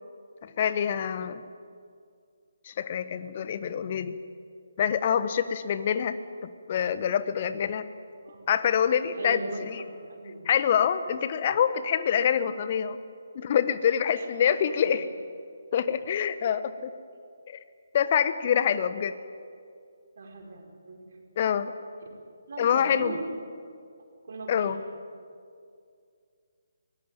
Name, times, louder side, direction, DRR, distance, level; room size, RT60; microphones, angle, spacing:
voice 1, 0.4-1.4 2.6-4.2 4.8-6.2 6.4-7.8 8.5-9.8 10.5-13.0 13.3-15.1 15.7-16.9 17.5-17.6 17.9-19.1 21.4-21.7 22.6-23.2 24.5-24.8, left 8 dB, 35° left, 13 dB, 1.1 m, -26 dB
voice 2, 9.2-10.4 14.1-14.6 14.8-15.0 20.2-21.0 22.5-23.3 24.2-24.7, right 2 dB, 50° right, 2 dB, 4.8 m, -39 dB
23.0 x 18.0 x 9.1 m, 2.3 s
figure-of-eight pair, 140°, 0 cm